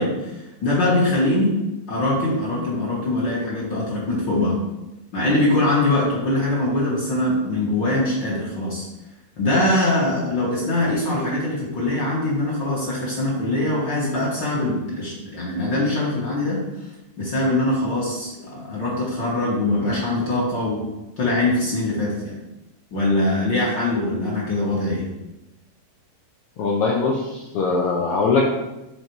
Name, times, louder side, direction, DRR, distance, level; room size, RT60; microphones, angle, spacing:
voice 1, 0.0-1.6 1.9-4.6 5.1-8.9 9.4-16.9 17.2-20.8 21.2-22.4 22.9-25.1, left 2 dB, 50° left, -6 dB, 1.6 m, -22 dB
voice 2, 26.6-28.4, left 4 dB, 75° left, -2 dB, 1.3 m, -21 dB
6.7 x 4.0 x 4.5 m, 0.97 s
omnidirectional pair, 3.3 m